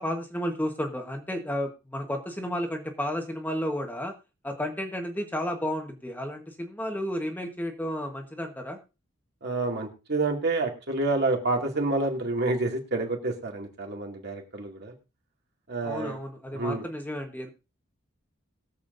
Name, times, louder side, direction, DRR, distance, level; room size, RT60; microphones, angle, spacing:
voice 1, 0.0-4.1 4.4-8.8 15.8-17.5, equal, 10° left, 3 dB, 1.3 m, -32 dB
voice 2, 9.4-14.9 15.7-16.2 16.5-16.8, right 2 dB, 55° right, 1 dB, 2.4 m, -28 dB
21.5 x 7.3 x 2.6 m, 0.29 s
head